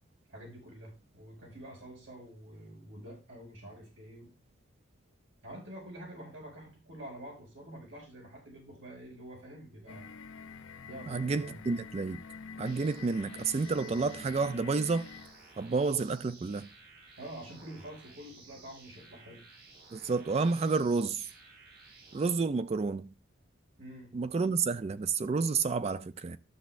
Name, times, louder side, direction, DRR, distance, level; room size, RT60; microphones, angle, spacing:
voice 1, 0.3-4.3 5.4-10.1 10.8-11.6 17.2-19.4 23.8-24.2, right 1 dB, 75° right, 5.4 m, -47 dB
sound 1, 9.9-15.4, left 5 dB, 90° left, 0.5 m, -47 dB
voice 2, 11.1-12.2 12.6-15.1 15.6-16.7 19.9-21.3 22.1-23.1 24.1-26.4, right 4 dB, 30° right, 0.3 m, -30 dB
sound 2, 12.6-22.3, right 4 dB, 50° right, 1.5 m, -56 dB
12.5 x 7.0 x 2.5 m
head